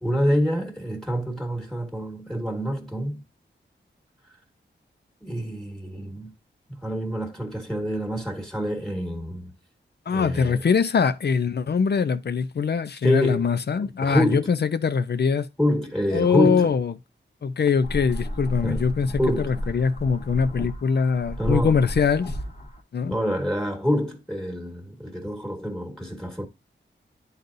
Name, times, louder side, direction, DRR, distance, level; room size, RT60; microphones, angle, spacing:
voice 1, 0.0-3.2 5.2-6.3 6.7-9.5 10.1-10.6 13.0-13.4 14.0-14.5 15.6-16.8 18.6-18.9 19.2-19.5 21.4-21.8 23.0-26.5, equal, 5° left, 1.5 m, -26 dB
voice 2, 10.1-15.5 16.1-16.9 17.4-22.4 22.9-23.2, left 6 dB, 55° left, 0.5 m, -23 dB
sound 1, 17.8-22.8, equal, 40° left, 1.3 m, -33 dB
10.5 x 4.0 x 2.6 m
wide cardioid pair, 110°, 20 cm